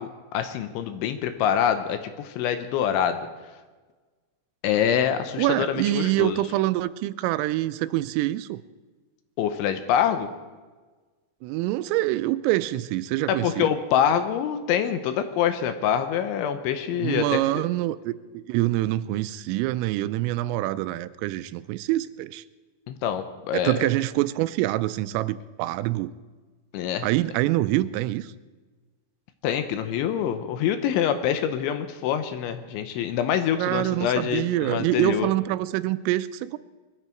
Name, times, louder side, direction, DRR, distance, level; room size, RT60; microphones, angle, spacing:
voice 1, 0.0-3.2 4.6-6.4 9.4-10.3 13.3-17.4 22.9-23.9 26.7-27.1 29.4-35.3, left 9 dB, 75° left, 9 dB, 3.0 m, -25 dB
voice 2, 5.4-8.6 11.4-13.7 17.0-22.4 23.5-26.1 27.0-28.3 33.6-36.6, right 16 dB, 90° right, 14 dB, 3.2 m, -25 dB
21.5 x 14.5 x 4.5 m, 1.3 s
omnidirectional pair, 5.8 m